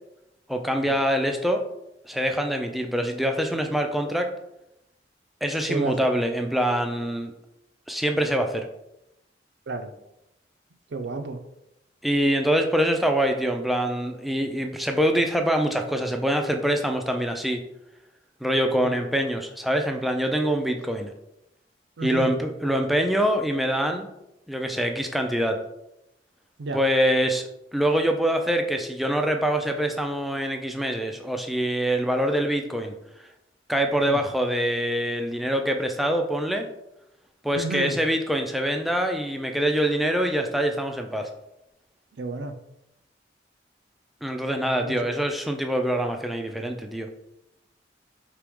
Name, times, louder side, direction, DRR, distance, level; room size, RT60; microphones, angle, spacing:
voice 1, 0.5-1.6 2.1-4.3 5.4-7.3 7.9-8.7 12.0-17.6 18.4-21.1 22.0-24.1 24.5-25.6 26.7-32.9 33.7-36.7 37.4-41.3 44.2-47.1, equal, ahead, 3 dB, 0.3 m, -24 dB
voice 2, 5.6-6.0 9.7-9.9 10.9-11.4 18.8-19.0 22.0-22.3 24.7-24.8 26.6-26.8 34.1-34.2 37.5-38.0 42.1-42.6 44.8-45.1, right 3 dB, 75° right, 7 dB, 0.5 m, -31 dB
4.6 x 2.9 x 3.5 m, 0.87 s
head